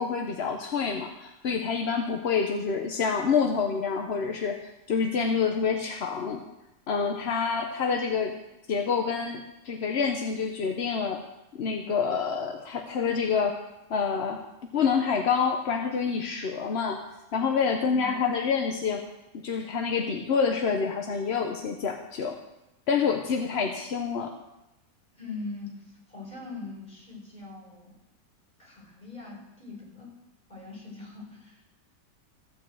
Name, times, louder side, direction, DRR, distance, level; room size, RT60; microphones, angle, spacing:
voice 1, 0.0-6.4 6.9-8.4 8.7-11.2 11.5-13.6 13.9-14.4 14.7-17.0 17.3-19.1 19.3-22.4 22.9-24.3, left 6 dB, 50° left, 4 dB, 0.8 m, -27 dB
voice 2, 25.1-25.8 26.1-27.9 28.6-30.1 30.5-31.7, left 3 dB, 20° left, -4 dB, 4.6 m, -41 dB
14.5 x 5.3 x 7.7 m, 0.94 s
omnidirectional pair, 1.9 m